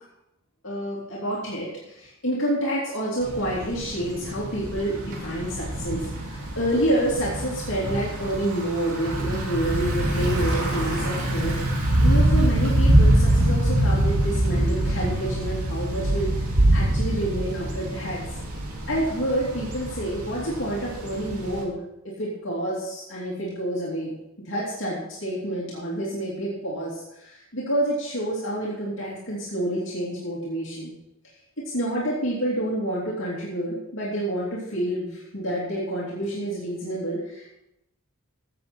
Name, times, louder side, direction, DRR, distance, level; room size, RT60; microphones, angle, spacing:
voice 1, 0.6-11.6 12.0-18.2 18.9-24.1 24.4-30.9 31.6-37.5, right 1 dB, 55° left, -6 dB, 2.8 m, -28 dB
Thunder / Bicycle, 3.2-21.6, right 1 dB, 90° right, 2.6 m, -24 dB
15.0 x 8.0 x 4.3 m, 0.85 s
head